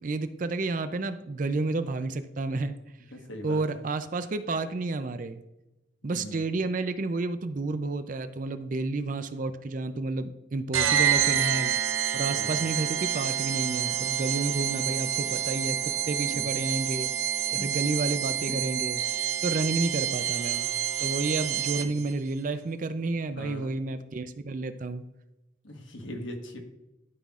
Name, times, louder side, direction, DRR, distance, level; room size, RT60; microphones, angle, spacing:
voice 1, 0.0-2.8 3.4-5.4 6.0-11.8 12.1-17.1 17.5-19.0 19.4-20.7 21.0-25.0, right 3 dB, 40° right, 10 dB, 0.4 m, -30 dB
voice 2, 3.1-3.8 6.0-6.4 12.3-12.5 16.3-16.5 17.6-17.7 18.5-18.6 23.2-23.7 25.6-26.6, left 1 dB, 70° left, 3 dB, 1.3 m, -41 dB
sound 1, 10.7-22.1, right 10 dB, 80° right, 0.6 m, -28 dB
12.5 x 5.7 x 2.4 m, 0.97 s
head